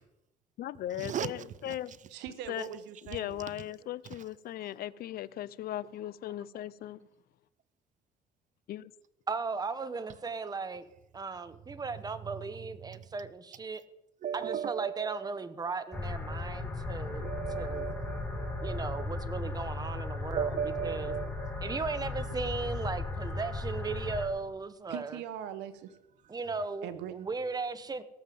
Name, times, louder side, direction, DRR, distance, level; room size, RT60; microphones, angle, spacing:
voice 1, 0.6-2.0 2.5-2.7 3.0-7.1 8.7-8.9, left 13 dB, 65° left, 0.6 m, -38 dB
voice 2, 2.1-3.4 24.9-26.0 26.8-27.3, right 10 dB, 90° right, 1.2 m, -41 dB
voice 3, 9.3-10.9 11.1-13.8 14.3-17.9 18.6-21.1 21.6-25.2 26.3-28.0, right 4 dB, 25° right, 1.1 m, -37 dB
voice 4, 14.2-15.2 17.2-19.1 20.3-21.8, right 8 dB, 45° right, 0.6 m, -36 dB
sound 1, 15.9-24.3, left 3 dB, 10° left, 3.8 m, -36 dB
17.5 x 7.4 x 7.7 m
cardioid pair, 110°, 17 cm